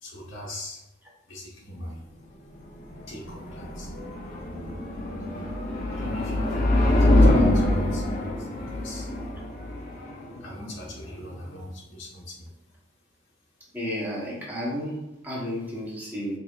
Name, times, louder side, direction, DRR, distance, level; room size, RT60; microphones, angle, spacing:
voice 1, 0.0-0.8 1.3-2.0 3.1-3.9 5.9-9.1 10.4-12.5, left 1 dB, 80° left, -4 dB, 1.3 m, -41 dB
sound 1, 2.6-11.6, left 1 dB, 45° left, 0.6 m, -25 dB
voice 2, 13.7-16.4, equal, 10° right, -6 dB, 1.0 m, -32 dB
4.8 x 2.7 x 2.4 m, 0.89 s
head